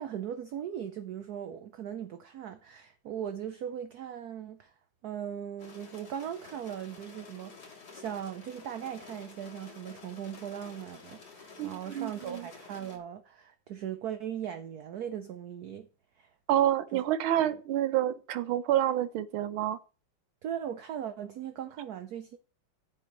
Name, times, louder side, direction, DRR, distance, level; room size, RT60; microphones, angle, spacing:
voice 1, 0.0-4.7 5.0-15.9 16.2-16.3 16.9-17.0 20.4-22.4, right 9 dB, 65° right, 1.0 m, -39 dB
sound 1, 5.6-13.0, left 4 dB, 55° left, 2.4 m, -50 dB
voice 2, 11.6-12.5 16.5-19.8, right 12 dB, 90° right, 1.6 m, -28 dB
13.5 x 7.7 x 3.1 m
omnidirectional pair, 2.2 m